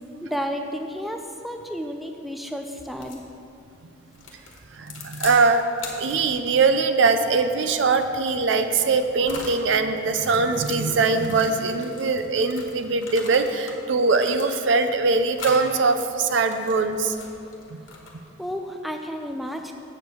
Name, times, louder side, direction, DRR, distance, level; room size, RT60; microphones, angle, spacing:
voice 1, 0.2-3.2 18.4-19.7, equal, ahead, 4 dB, 0.3 m, -32 dB
sound 1, 2.9-3.3 4.1-5.4 5.8-9.6 10.1-13.8 14.1-14.9 15.3-15.7 16.2-18.3, left 4 dB, 75° left, 1.3 m, -41 dB
voice 2, 4.7-5.6 5.9-17.1 18.1-18.2, right 4 dB, 65° right, 8 dB, 0.5 m, -22 dB
7.9 x 4.7 x 6.8 m, 2.6 s
head